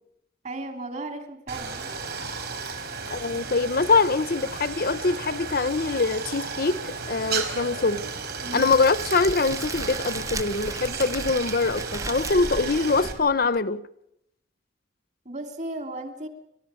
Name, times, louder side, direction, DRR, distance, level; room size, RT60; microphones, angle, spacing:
voice 1, 0.4-1.9 8.4-8.7 15.2-16.3, right 2 dB, 40° right, 3.3 m, -35 dB
Stream, 1.5-13.1, right 5 dB, 60° right, 4.3 m, -34 dB
voice 2, 3.1-8.0 8.5-13.8, left 4 dB, 50° left, 0.9 m, -23 dB
Crackle, 8.5-13.6, right 3 dB, 15° right, 0.8 m, -36 dB
30.0 x 13.5 x 8.5 m
head